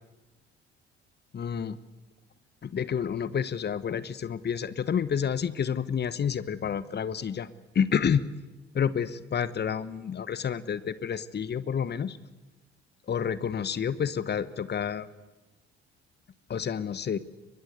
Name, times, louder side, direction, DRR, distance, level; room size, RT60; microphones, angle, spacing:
voice 1, 1.3-1.8 2.6-7.5 7.7-8.3 8.7-12.2 13.1-15.1 16.5-17.2, left 7 dB, 30° left, 17 dB, 1.2 m, -29 dB
24.0 x 22.0 x 8.2 m, 1.1 s
figure-of-eight pair, 50°, 32 cm